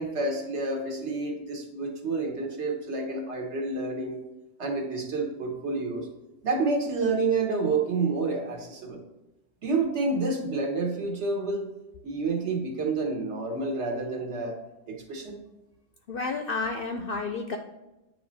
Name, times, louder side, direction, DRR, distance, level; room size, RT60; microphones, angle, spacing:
voice 1, 0.0-4.2 4.6-6.1 6.4-9.0 9.6-11.7 12.0-14.6 14.9-15.4, right 3 dB, 60° right, 2 dB, 1.3 m, -29 dB
voice 2, 16.1-17.6, left 4 dB, 60° left, 4 dB, 0.6 m, -31 dB
8.9 x 3.2 x 4.0 m, 1.0 s
omnidirectional pair, 1.3 m